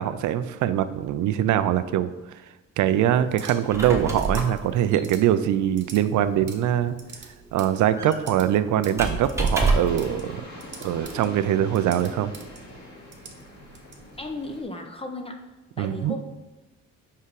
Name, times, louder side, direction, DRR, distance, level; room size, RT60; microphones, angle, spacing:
voice 1, 0.0-2.1 2.8-7.0 7.5-10.4 10.8-12.3 15.8-16.2, right 11 dB, 75° right, 13 dB, 0.5 m, -23 dB
sound 1, 2.9-14.6, right 4 dB, 35° right, 1.1 m, -47 dB
Squeak, 3.5-10.1, right 3 dB, 10° right, 1.2 m, -29 dB
sound 2, 9.6-14.6, left 2 dB, 65° left, 2.1 m, -43 dB
voice 2, 14.2-15.4 15.8-16.2, left 1 dB, 20° left, 3 dB, 0.8 m, -34 dB
5.8 x 4.8 x 4.8 m, 1.1 s
cardioid pair, 90°, 30 cm